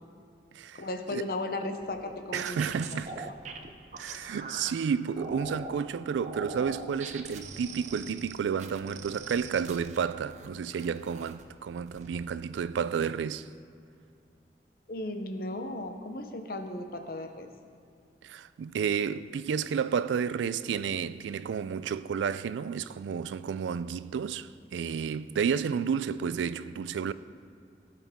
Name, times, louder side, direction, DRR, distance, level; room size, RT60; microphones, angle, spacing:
voice 1, 0.7-3.0 3.3-3.4 14.9-17.5, left 2 dB, 55° left, 0.7 m, -36 dB
sound 1, 1.8-4.7 5.2-5.8 6.2-10.5 10.8-11.4 11.8-12.2, right 3 dB, 40° right, 0.6 m, -42 dB
voice 2, 2.3-3.3 4.0-13.5 18.2-27.1, right 7 dB, 90° right, 0.3 m, -31 dB
16.0 x 5.8 x 3.6 m
head